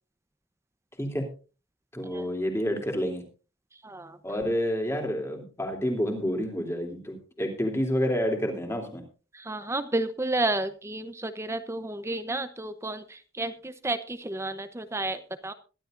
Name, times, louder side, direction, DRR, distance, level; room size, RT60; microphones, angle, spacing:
voice 1, 1.9-3.2 4.2-9.0, equal, 15° left, 3 dB, 3.0 m, -29 dB
voice 2, 3.8-4.2 9.3-15.5, right 2 dB, 15° right, 10 dB, 0.8 m, -31 dB
22.0 x 12.5 x 2.6 m, 0.34 s
head